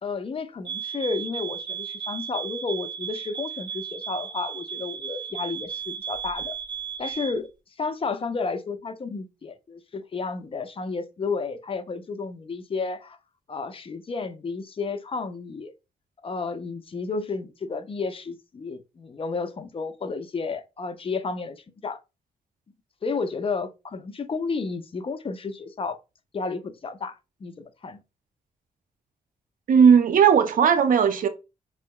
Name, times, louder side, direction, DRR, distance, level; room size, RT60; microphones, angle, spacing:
voice 1, 0.0-6.6 7.0-7.5 7.8-13.2 13.5-15.7 16.2-22.0 23.0-26.0 26.3-28.0, left 4 dB, 35° left, 0.5 m, -32 dB
sound 1, 0.6-7.4, right 8 dB, 30° right, 1.1 m, -35 dB
voice 2, 29.7-31.3, right 7 dB, 65° right, 0.5 m, -17 dB
4.2 x 2.7 x 2.2 m
cardioid pair, 90°, 15 cm